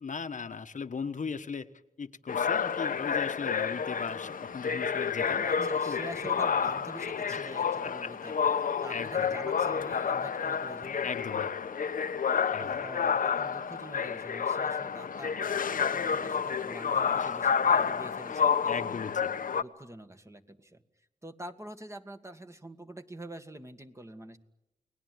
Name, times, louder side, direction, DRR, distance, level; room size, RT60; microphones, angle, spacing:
voice 1, 0.0-1.7 2.0-6.0 7.3-8.1 8.9-9.3 11.0-11.5 12.5-12.8 17.2-17.4 18.3-19.3, left 5 dB, 65° left, 9 dB, 1.3 m, -38 dB
sound 1, 2.3-19.6, left 6 dB, 80° left, 1.0 m, -29 dB
voice 2, 5.3-11.1 12.6-19.0 19.5-20.8 21.2-24.4, right 1 dB, 20° right, 7 dB, 2.0 m, -46 dB
30.0 x 20.0 x 9.5 m, 0.95 s
wide cardioid pair, 75°, 14 cm